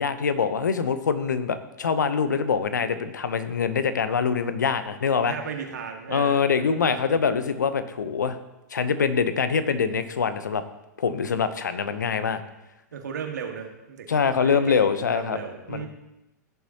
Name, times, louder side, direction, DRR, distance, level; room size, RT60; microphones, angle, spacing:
voice 1, 0.0-5.3 6.1-8.4 8.7-10.6 11.0-12.4 14.1-15.4 15.7-15.9, left 6 dB, 80° left, 11 dB, 0.8 m, -24 dB
voice 2, 4.9-7.2 12.9-15.9, right 6 dB, 75° right, 3 dB, 1.7 m, -36 dB
16.0 x 7.2 x 2.9 m, 0.98 s
hypercardioid pair, 105°, 10 cm